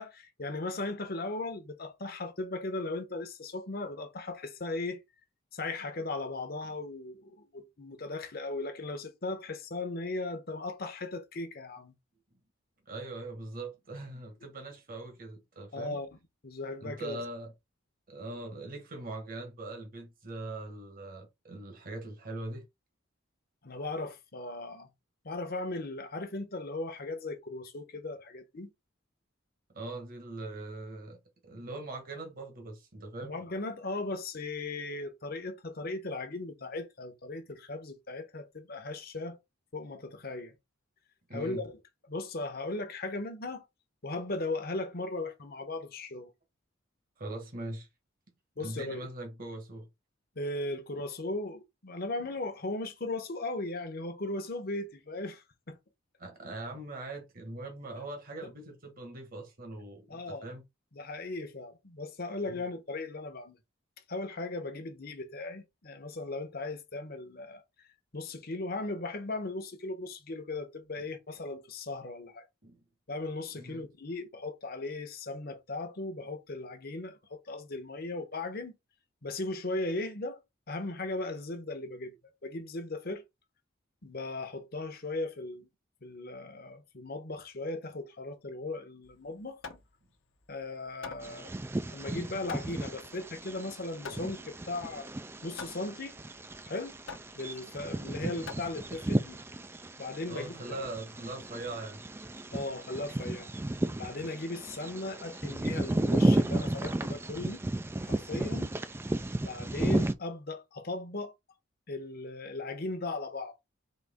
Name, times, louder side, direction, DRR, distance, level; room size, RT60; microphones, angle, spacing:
voice 1, 0.0-5.0 5.5-11.9 15.7-16.1 16.4-17.2 23.6-24.9 25.2-28.7 33.2-39.4 39.7-40.5 41.3-41.8 42.1-43.6 44.0-46.3 48.6-49.1 50.4-55.8 60.1-60.5 60.9-63.6 64.1-67.6 68.1-72.5 73.1-78.8 79.2-80.4 80.7-82.1 82.4-83.2 84.0-85.7 86.0-89.6 90.5-91.5 91.9-95.1 95.4-96.2 96.6-97.0 97.4-99.4 100.0-100.8 102.5-103.5 104.0-107.6 108.0-108.7 109.4-111.3 111.9-113.6, left 2 dB, 50° left, 1.0 m, -37 dB
voice 2, 12.9-16.0 16.8-17.5 18.1-22.6 29.7-31.2 31.4-33.3 41.3-41.7 47.2-47.9 48.6-49.9 56.2-60.6 62.4-62.6 72.6-72.8 73.6-73.8 100.3-102.0, right 2 dB, 45° right, 1.3 m, -41 dB
Hammer, 89.0-99.3, left 4 dB, 80° left, 1.0 m, -48 dB
Bird vocalization bird call bird song, 91.2-110.1, right 1 dB, 10° right, 0.3 m, -33 dB
4.1 x 3.1 x 3.6 m
head